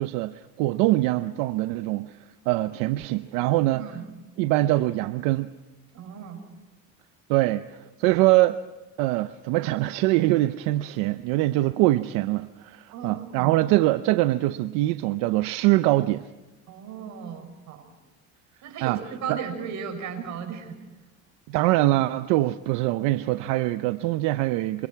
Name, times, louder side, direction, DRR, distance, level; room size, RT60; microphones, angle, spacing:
voice 1, 0.0-2.2 2.5-3.8 4.4-5.5 7.3-8.6 9.0-16.3 18.8-19.0 19.3-19.4 21.5-24.9, right 17 dB, 85° right, 0.8 m, -23 dB
voice 2, 3.7-4.0 5.9-6.4 12.9-13.7 16.7-17.9 18.6-20.8, right 7 dB, 60° right, 6.8 m, -36 dB
28.0 x 26.5 x 4.7 m
cardioid pair, 115°, 32 cm